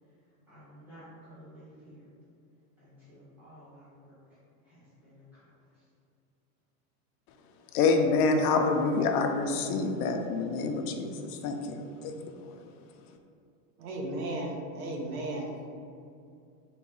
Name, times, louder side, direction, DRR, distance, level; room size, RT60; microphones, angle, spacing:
voice 1, 0.5-2.0 3.1-4.1 5.0-5.1, equal, 5° right, -14 dB, 1.0 m, -52 dB
voice 2, 7.7-12.5, left 4 dB, 80° left, 4 dB, 0.6 m, -27 dB
voice 3, 13.8-15.7, right 1 dB, 75° right, 0 dB, 0.8 m, -35 dB
3.9 x 2.3 x 3.6 m, 2.5 s
supercardioid pair, 175°, 45 cm